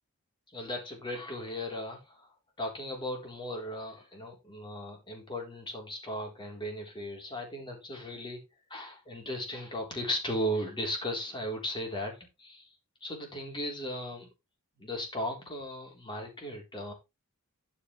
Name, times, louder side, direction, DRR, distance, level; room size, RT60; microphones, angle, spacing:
voice 1, 0.5-2.3 2.6-8.4 8.7-12.7 13.0-14.3 14.8-16.9, equal, 20° left, 1 dB, 3.9 m, -36 dB
11.5 x 7.1 x 3.3 m, 0.24 s
head